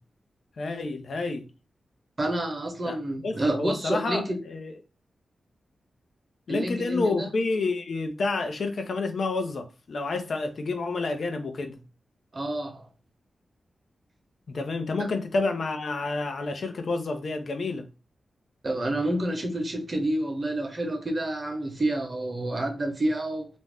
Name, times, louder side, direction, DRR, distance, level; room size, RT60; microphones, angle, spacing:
voice 1, 0.6-1.5 2.8-4.8 6.5-11.8 14.5-17.9, left 3 dB, 70° left, 0.5 m, -29 dB
voice 2, 2.2-4.4 6.5-7.3 12.3-12.9 18.6-23.5, right 1 dB, 40° right, 0.8 m, -29 dB
2.5 x 2.2 x 3.4 m
cardioid pair, 50°, 0 cm